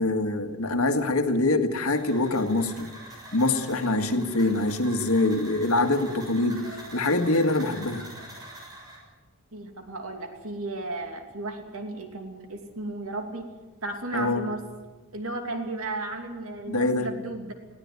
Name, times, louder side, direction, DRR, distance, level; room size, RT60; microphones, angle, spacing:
voice 1, 0.0-2.9 3.3-6.6 6.9-8.0 14.1-14.5 16.7-17.1, left 2 dB, 90° left, 7 dB, 2.0 m, -24 dB
sound 1, 1.9-9.0, right 1 dB, 20° right, 6.8 m, -44 dB
voice 2, 9.5-13.5 13.8-14.6 15.1-17.5, right 2 dB, 75° right, 5 dB, 2.8 m, -34 dB
20.5 x 17.0 x 9.6 m, 1.2 s
head